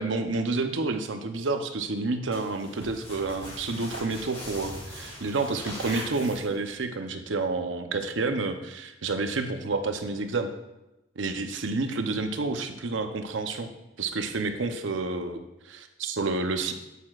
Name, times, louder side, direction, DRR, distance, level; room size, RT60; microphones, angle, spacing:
voice 1, 0.0-10.5 11.2-13.7 14.0-16.7, right 3 dB, 75° right, 7 dB, 0.7 m, -29 dB
sound 1, 2.3-6.8, left 1 dB, 30° left, 2.0 m, -41 dB
8.7 x 8.4 x 2.4 m, 0.95 s
head